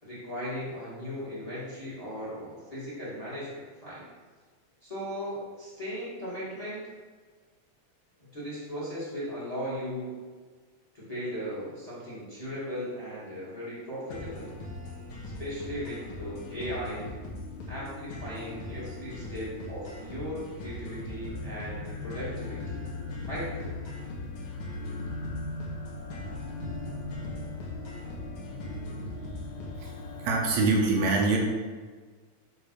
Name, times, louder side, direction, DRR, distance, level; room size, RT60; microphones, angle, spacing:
voice 1, 0.0-4.0 4.8-6.9 8.3-10.1 10.9-14.5 15.4-17.1 17.7-22.8 23.3-23.7, equal, 15° left, -8 dB, 1.7 m, -37 dB
sound 1, 14.1-30.1, left 1 dB, 60° left, 1.7 m, -41 dB
sound 2, 14.6-30.6, left 3 dB, 75° left, 2.4 m, -41 dB
voice 2, 30.2-31.4, right 3 dB, 75° right, 0 dB, 2.0 m, -24 dB
6.7 x 3.3 x 5.9 m, 1.4 s
omnidirectional pair, 3.4 m